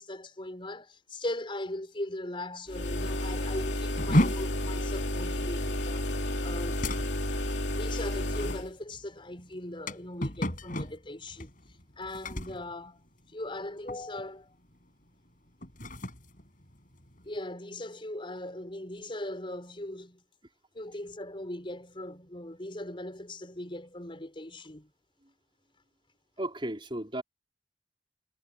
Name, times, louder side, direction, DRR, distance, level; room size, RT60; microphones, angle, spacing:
voice 1, 0.0-6.1 6.4-6.9 7.7-11.5 12.0-13.0 13.3-14.5 17.2-20.2 20.7-24.9, left 1 dB, 30° left, 5.4 m, -39 dB
sound 1, 2.7-8.7, left 1 dB, 80° left, 2.9 m, -31 dB
sound 2, 4.0-13.6 13.9-14.3 14.6-14.9 15.5-17.4, left 1 dB, 50° left, 7.2 m, -34 dB
voice 2, 26.4-27.2, right 1 dB, 30° right, 4.6 m, -34 dB
head